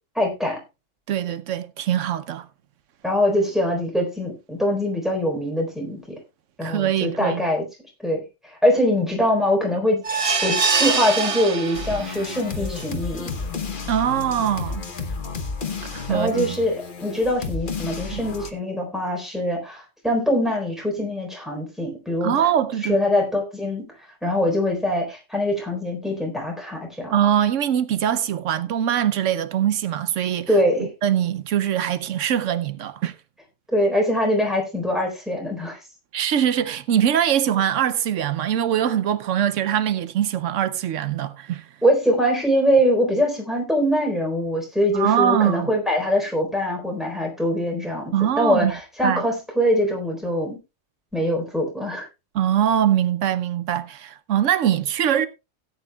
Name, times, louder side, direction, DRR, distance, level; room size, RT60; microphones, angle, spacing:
voice 1, 0.2-0.6 3.0-6.2 6.6-7.7 8.0-8.2 8.6-13.3 16.1-22.4 22.9-23.8 24.2-27.1 30.5-30.9 33.7-35.8 41.8-50.6 51.1-52.1, equal, ahead, 3.8 m, -23 dB
voice 2, 1.1-2.5 6.6-7.4 13.9-14.8 15.9-16.6 18.1-18.2 22.2-23.0 27.1-30.6 31.0-33.1 36.1-41.7 44.9-45.7 48.1-48.7 49.0-49.2 52.3-55.3, right 10 dB, 85° right, 1.1 m, -22 dB
sound 1, 10.0-12.3 12.8-12.9 13.2-13.3, right 5 dB, 35° right, 0.6 m, -23 dB
sound 2, 11.7-18.5, left 4 dB, 45° left, 1.2 m, -32 dB
17.0 x 9.2 x 2.3 m
omnidirectional pair, 1.3 m